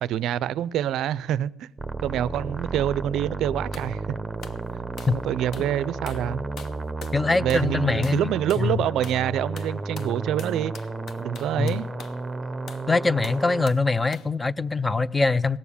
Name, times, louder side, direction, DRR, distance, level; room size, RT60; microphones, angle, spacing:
voice 1, 0.0-1.7 2.0-4.2 5.1-6.4 7.4-10.7 11.2-11.9, right 11 dB, 60° right, 0.5 m, -26 dB
sound 1, 1.8-13.7, right 3 dB, 10° right, 0.8 m, -33 dB
sound 2, 3.7-3.9 4.4-4.6 5.0-5.2 5.5-5.7 6.1-6.3 6.6-7.2 7.5-7.7 8.0-8.2 8.5-8.7 9.0-9.3 9.6-12.2 12.7-12.9 13.2-13.9 14.1-14.3, left 5 dB, 50° left, 1.1 m, -43 dB
voice 2, 7.1-8.8 11.6-11.8 12.9-15.6, left 3 dB, 15° left, 0.4 m, -23 dB
18.0 x 7.2 x 8.4 m
cardioid pair, 130°, 0 cm